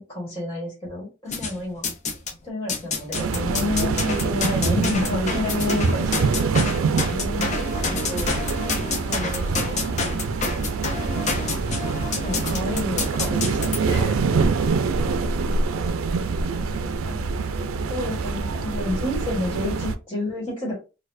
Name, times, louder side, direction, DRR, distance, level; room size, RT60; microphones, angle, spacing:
voice 1, 0.1-1.8 2.4-8.3 9.0-10.6 12.2-14.5 17.0-17.3 17.9-20.7, left 1 dB, 20° left, 1.5 m, -30 dB
voice 2, 1.2-1.6 3.6-3.8 14.8-17.3 17.6-18.2, left 1 dB, 15° right, 1.1 m, -47 dB
sound 1, 1.3-2.3 2.7-13.8, left 4 dB, 35° left, 0.6 m, -28 dB
sound 2, 3.1-19.9, right 4 dB, 80° right, 0.4 m, -25 dB
4.2 x 2.3 x 2.5 m
head